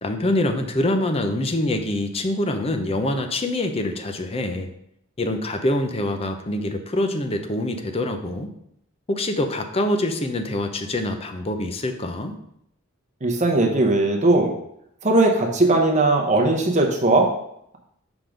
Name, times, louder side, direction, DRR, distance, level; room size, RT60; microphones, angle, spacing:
voice 1, 0.0-4.7 5.2-8.5 9.1-12.4, left 1 dB, 30° left, 6 dB, 0.6 m, -25 dB
voice 2, 13.2-14.5 15.0-17.3, right 2 dB, 35° right, 2 dB, 0.9 m, -18 dB
6.1 x 3.8 x 5.1 m, 0.75 s
head